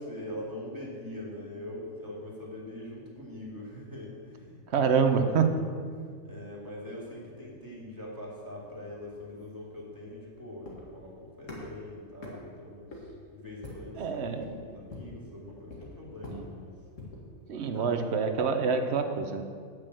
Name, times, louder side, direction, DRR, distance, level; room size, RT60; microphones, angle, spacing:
voice 1, 0.0-5.7 6.2-16.7 17.6-17.9, left 1 dB, 15° right, -4 dB, 2.5 m, -43 dB
voice 2, 4.7-5.4 14.0-14.8 16.3-16.5 17.5-19.4, right 6 dB, 55° right, 7 dB, 1.0 m, -27 dB
sound 1, 8.6-17.3, left 2 dB, 65° left, 2.2 m, -47 dB
9.2 x 6.2 x 7.6 m, 2.1 s
omnidirectional pair, 1.4 m